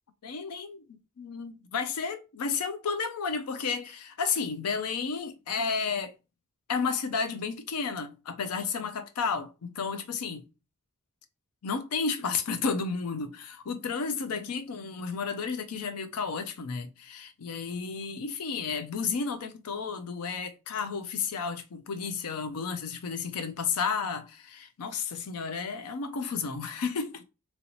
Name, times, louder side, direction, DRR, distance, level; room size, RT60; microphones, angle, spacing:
voice 1, 0.2-0.8 1.2-6.2 6.7-10.5 11.6-27.2, left 5 dB, 80° left, 0.5 m, -32 dB
2.9 x 2.7 x 3.0 m
head